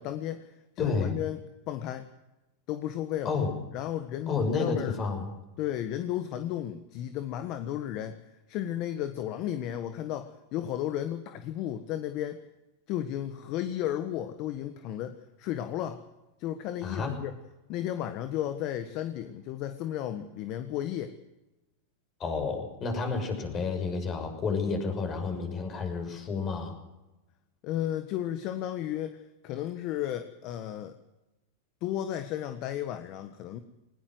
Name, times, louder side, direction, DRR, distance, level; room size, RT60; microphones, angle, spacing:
voice 1, 0.0-1.4 1.7-2.1 2.7-3.4 3.7-5.0 5.6-8.2 8.5-12.4 12.9-16.0 16.4-17.3 17.7-21.1 27.6-30.9 31.8-33.6, left 11 dB, 45° left, 10 dB, 1.5 m, -34 dB
voice 2, 0.8-1.1 3.2-3.5 4.3-5.3 16.8-17.1 22.2-26.8, left 4 dB, 30° left, 5 dB, 6.4 m, -30 dB
20.0 x 19.0 x 8.0 m, 0.99 s
supercardioid pair, 130°, 0 cm